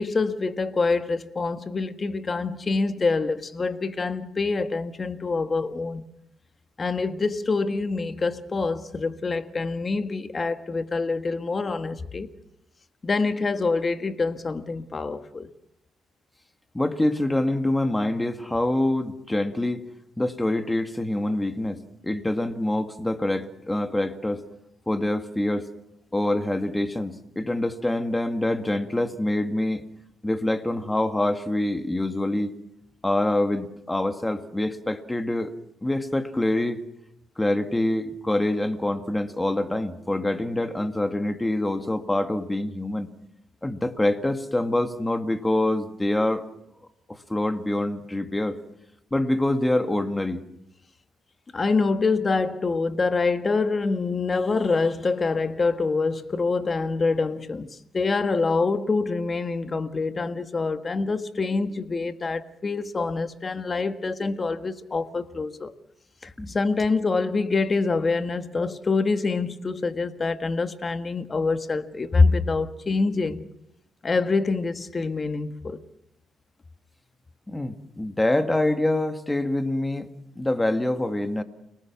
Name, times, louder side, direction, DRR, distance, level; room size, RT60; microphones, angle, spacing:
voice 1, 0.0-6.0 6.8-12.3 13.0-15.5 51.5-57.7 57.9-65.7 66.2-73.4 74.0-75.8, left 3 dB, 30° left, 1.6 m, -25 dB
voice 2, 16.7-19.8 20.2-24.4 24.9-25.7 26.1-29.8 30.2-32.5 33.0-35.5 35.8-36.8 37.4-43.1 43.6-46.4 47.1-48.6 49.1-50.4 66.4-66.5 77.5-80.1 80.4-81.4, left 1 dB, 10° left, 2.0 m, -25 dB
30.0 x 19.5 x 6.0 m
cardioid pair, 90°, 0 cm